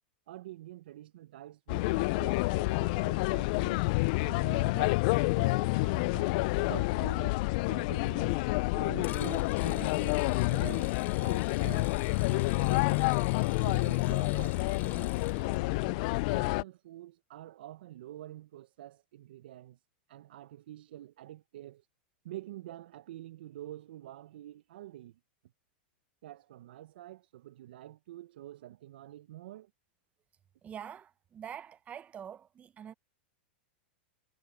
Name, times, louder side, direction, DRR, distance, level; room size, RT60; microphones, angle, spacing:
voice 1, 0.3-3.8 4.2-7.4 7.7-8.4 8.7-11.9 12.2-13.2 13.6-16.0 16.3-19.8 20.1-21.9 22.2-25.2 26.2-29.7, right 14 dB, 70° right, 1.0 m, -47 dB
sound 1, 1.7-16.6, left 25 dB, 55° left, 0.4 m, -28 dB
sound 2, 9.0-15.6, left 10 dB, 30° left, 1.3 m, -48 dB
voice 2, 30.6-32.9, right 9 dB, 25° right, 1.0 m, -45 dB
hypercardioid pair, 110°, 6 cm